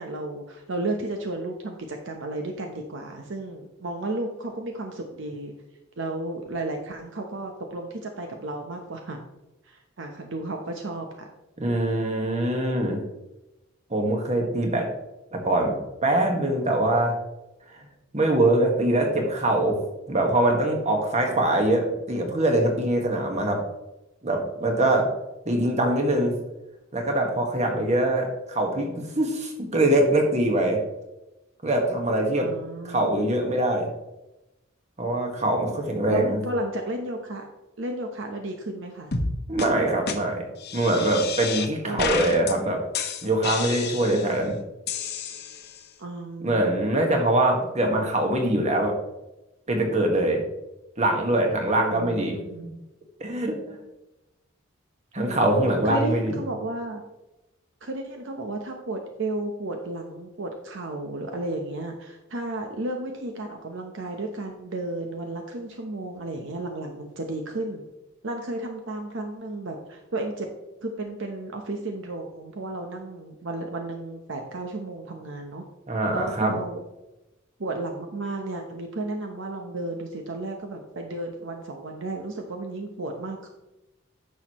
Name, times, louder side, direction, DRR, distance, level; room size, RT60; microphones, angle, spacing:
voice 1, 0.0-5.5 6.0-9.2 9.6-11.3 32.3-33.2 35.9-37.5 37.8-39.1 41.8-42.2 46.0-46.8 51.9-52.7 55.2-57.0 57.8-67.8 68.2-70.5 70.8-75.6 76.1-76.8 77.6-83.5, right 2 dB, 65° right, 3 dB, 0.9 m, -33 dB
voice 2, 11.6-13.0 13.9-14.9 15.3-17.1 18.1-19.8 20.1-23.6 24.2-25.1 25.4-26.3 26.9-30.8 31.6-32.5 32.9-33.9 35.0-36.4 39.5-40.4 40.7-42.8 43.2-44.6 46.4-48.9 49.7-50.4 51.0-52.4 52.6-52.7 53.2-53.8 55.1-56.3 75.9-76.5, right 1 dB, 35° right, 2 dB, 1.5 m, -23 dB
sound 1, 39.1-39.3 39.6-39.7 40.1-40.2 40.6-41.7 42.0-42.5 42.9-44.3 44.9-45.8, left 5 dB, 55° left, 1.0 m, -30 dB
10.0 x 6.4 x 3.0 m, 0.97 s
head